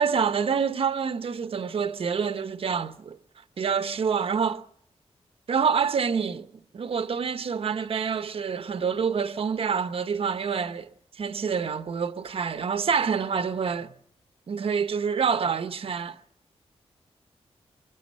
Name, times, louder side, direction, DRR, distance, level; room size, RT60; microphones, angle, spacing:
voice 1, 0.0-3.2 3.6-4.6 5.5-6.5 6.7-10.9 11.2-13.9 14.5-16.2, right 6 dB, 60° right, 0.9 m, -27 dB
25.5 x 23.0 x 5.4 m
wide cardioid pair, 170°, 11 cm